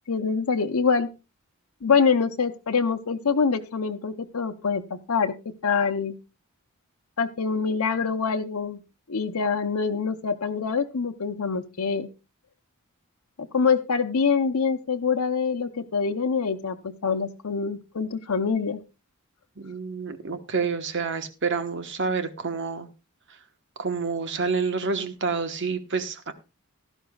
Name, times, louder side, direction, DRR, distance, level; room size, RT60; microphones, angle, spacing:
voice 1, 0.1-1.1 1.8-5.3 5.6-6.1 7.2-8.8 9.1-12.1 13.4-18.8, left 5 dB, 90° left, 5 dB, 0.7 m, -25 dB
voice 2, 19.6-22.9 23.8-26.3, right 5 dB, 55° right, 9 dB, 1.2 m, -28 dB
16.0 x 12.5 x 2.3 m, 0.28 s
head